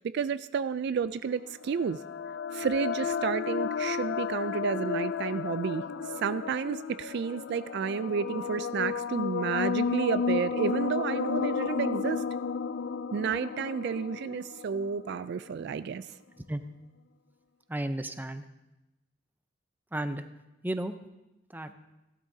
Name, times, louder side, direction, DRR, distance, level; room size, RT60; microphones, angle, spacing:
voice 1, 0.0-2.0 2.5-5.8 6.2-12.2 13.1-16.0, right 6 dB, 60° right, 14 dB, 0.3 m, -31 dB
sound 1, 1.2-15.4, left 6 dB, 65° left, 0.4 m, -33 dB
voice 2, 17.7-18.4 19.9-20.2 20.6-20.9 21.5-21.7, right 1 dB, 10° right, 9 dB, 0.6 m, -33 dB
15.5 x 12.0 x 2.7 m, 0.99 s
head